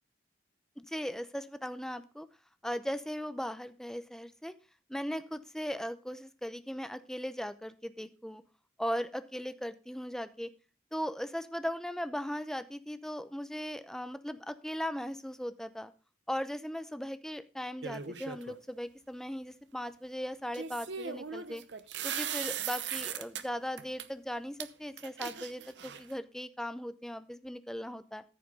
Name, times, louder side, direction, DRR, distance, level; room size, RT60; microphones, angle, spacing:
voice 1, 0.8-2.3 2.6-4.5 4.9-8.4 8.8-10.5 10.9-15.9 16.3-21.6 22.0-28.2, equal, 5° left, 11 dB, 0.7 m, -38 dB
sound 1, 17.8-18.6 20.5-23.4 23.8-24.1 24.6-24.7 25.0-26.2, right 8 dB, 85° right, 0.9 m, -38 dB
14.0 x 5.0 x 5.3 m, 0.33 s
head